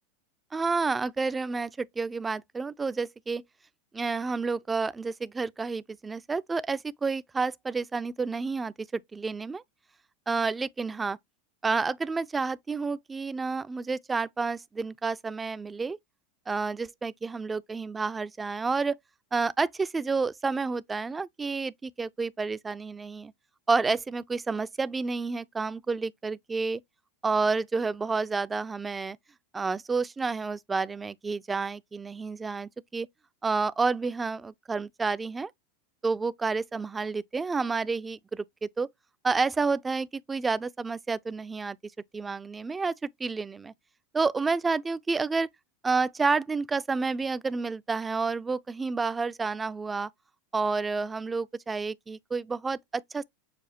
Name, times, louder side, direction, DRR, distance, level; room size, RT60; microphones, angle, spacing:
voice 1, 0.5-3.4 3.9-9.6 10.3-11.2 11.6-16.0 16.5-19.0 19.3-23.3 23.7-26.8 27.2-29.2 29.5-33.1 33.4-35.5 36.0-38.9 39.2-41.8 42.1-43.7 44.1-45.5 45.8-50.1 50.5-53.2, right 4 dB, 15° right, 0.4 m, -30 dB
6.7 x 2.5 x 2.7 m
hypercardioid pair, 105°, 0 cm